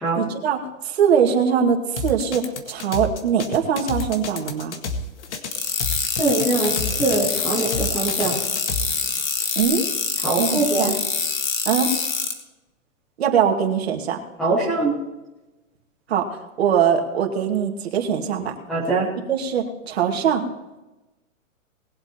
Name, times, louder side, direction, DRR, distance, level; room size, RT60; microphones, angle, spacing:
voice 1, 0.2-4.8 9.6-9.9 10.4-11.0 11.7-11.9 13.2-14.2 16.1-18.5 19.3-20.5, right 7 dB, 50° right, 3 dB, 2.4 m, -22 dB
sound 1, 2.0-9.6, left 3 dB, 60° left, 1.9 m, -30 dB
sound 2, 5.5-12.3, left 5 dB, 75° left, 2.6 m, -25 dB
voice 2, 6.2-8.4 10.2-10.9 14.4-14.9 18.7-19.1, right 3 dB, ahead, -7 dB, 0.5 m, -22 dB
20.5 x 7.9 x 4.4 m, 1.0 s
hypercardioid pair, 170°, 40 cm